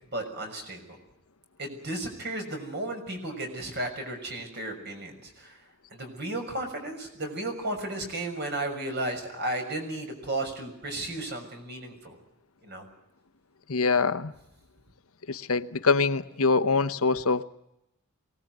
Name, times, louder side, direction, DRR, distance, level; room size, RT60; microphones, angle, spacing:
voice 1, 0.1-1.0 1.6-5.6 5.9-12.2 12.6-12.8, right 1 dB, 50° right, 4 dB, 6.4 m, -34 dB
voice 2, 13.7-14.3 15.3-17.4, left 4 dB, 80° left, 11 dB, 1.0 m, -24 dB
24.0 x 19.0 x 9.3 m, 0.85 s
head